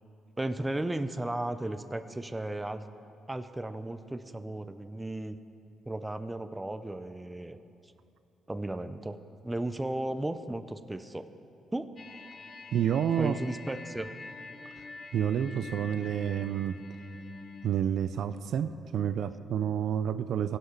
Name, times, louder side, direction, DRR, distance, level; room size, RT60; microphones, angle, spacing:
voice 1, 0.4-2.8 3.3-5.4 5.9-7.6 8.5-9.2 9.4-11.3 11.7-11.9 13.2-14.1, right 1 dB, 10° right, 10 dB, 0.5 m, -35 dB
sound 1, 12.0-17.7, left 3 dB, 40° left, 0.7 m, -46 dB
voice 2, 12.7-13.4 15.1-16.8 17.6-20.6, right 9 dB, 70° right, 12 dB, 0.4 m, -29 dB
17.0 x 5.8 x 5.6 m, 2.7 s
cardioid pair, 90°, 0 cm